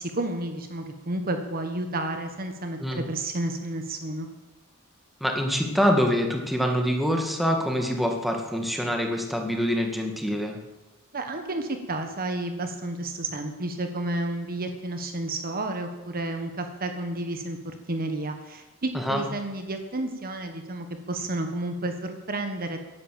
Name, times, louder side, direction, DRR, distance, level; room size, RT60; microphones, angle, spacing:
voice 1, 0.0-4.3 11.1-17.6 17.9-22.8, right 2 dB, 45° right, 6 dB, 1.4 m, -31 dB
voice 2, 5.2-10.6 18.9-19.2, equal, ahead, 2 dB, 2.0 m, -25 dB
16.0 x 11.0 x 7.6 m, 1.1 s
head